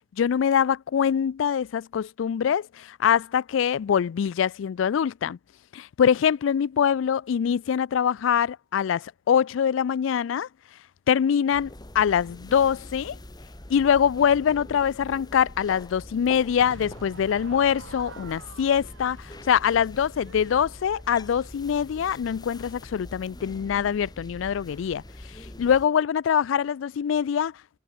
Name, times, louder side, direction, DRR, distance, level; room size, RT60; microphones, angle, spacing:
voice 1, 0.2-5.4 5.7-10.5 11.1-13.2 13.7-25.0 25.6-27.5, left 8 dB, 80° left, 0.3 m, -24 dB
sound 1, 11.5-25.9, left 1 dB, 20° left, 1.7 m, -44 dB
Crowd / Fireworks, 16.6-21.8, right 4 dB, 80° right, 1.1 m, -48 dB
head